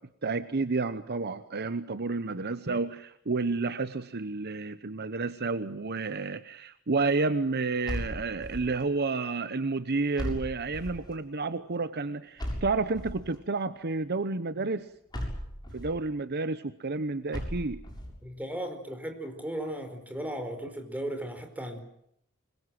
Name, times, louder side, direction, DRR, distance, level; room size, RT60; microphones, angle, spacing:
voice 1, 0.2-14.9 15.7-17.8, right 3 dB, 50° right, 0.9 m, -30 dB
sound 1, 7.8-8.8 10.2-11.1 12.4-13.3 15.1-16.0 17.3-18.2, equal, 20° left, 7.2 m, -36 dB
voice 2, 18.2-21.8, right 1 dB, 5° right, 4.7 m, -36 dB
26.0 x 22.0 x 7.7 m
head